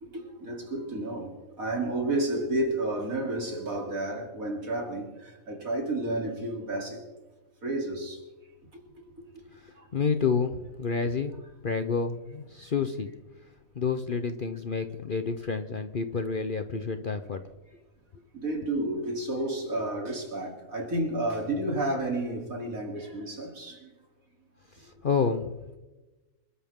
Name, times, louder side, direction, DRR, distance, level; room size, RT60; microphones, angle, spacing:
voice 1, 0.0-7.0 7.6-8.2 9.8-9.9 18.3-23.9, right 1 dB, 65° right, 3.8 m, -31 dB
voice 2, 9.5-13.1 13.7-17.4 24.7-25.8, left 5 dB, 45° left, 0.8 m, -29 dB
26.5 x 13.0 x 3.7 m
omnidirectional pair, 1.5 m